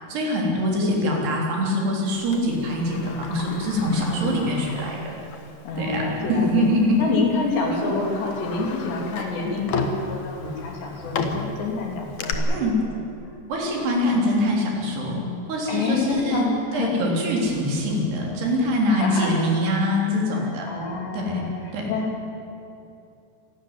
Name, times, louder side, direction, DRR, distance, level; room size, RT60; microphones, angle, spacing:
voice 1, 0.1-5.1 5.8-7.0 7.7-7.9 12.5-12.8 13.5-15.2 15.5-20.7 21.1-21.4 21.7-21.9, equal, 70° right, -1 dB, 5.6 m, -24 dB
voice 2, 0.8-1.3 3.7-4.5 5.7-6.7 7.0-12.6 12.9-13.3 14.1-14.3 15.7-17.1 18.9-19.4 20.3-22.3, left 3 dB, 85° left, 0 dB, 5.5 m, -28 dB
Sliding door, 2.3-5.6 5.9-6.0 6.9-7.1 7.6-12.3, left 4 dB, 60° left, 2.3 m, -33 dB
26.5 x 12.5 x 9.6 m, 2.7 s
omnidirectional pair, 4.9 m